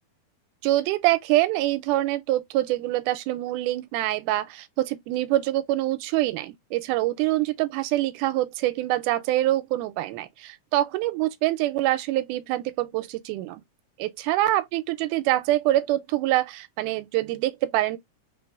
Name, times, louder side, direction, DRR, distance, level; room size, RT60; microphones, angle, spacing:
voice 1, 0.6-13.6 14.0-18.0, right 15 dB, 90° right, 2.1 m, -25 dB
3.9 x 3.9 x 2.3 m
omnidirectional pair, 3.5 m